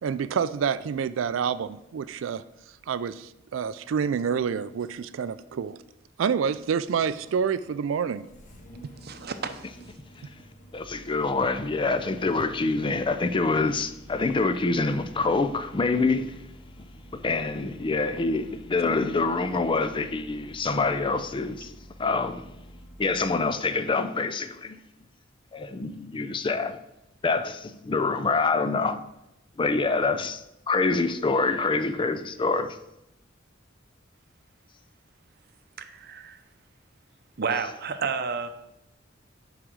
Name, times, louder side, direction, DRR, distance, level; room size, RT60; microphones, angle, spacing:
voice 1, 0.0-2.4 2.9-5.8 6.2-8.3, right 7 dB, 85° right, 0.4 m, -28 dB
Engine starting, 5.4-23.6, equal, 40° left, 1.3 m, -50 dB
voice 2, 9.0-9.7 35.8-36.4 37.4-38.5, right 5 dB, 55° right, 0.7 m, -31 dB
voice 3, 10.7-16.4 17.1-21.7 22.0-22.5 23.0-24.8 25.5-26.8 27.2-29.0 29.6-32.8, left 3 dB, 25° left, 0.4 m, -26 dB
6.3 x 4.9 x 6.2 m
head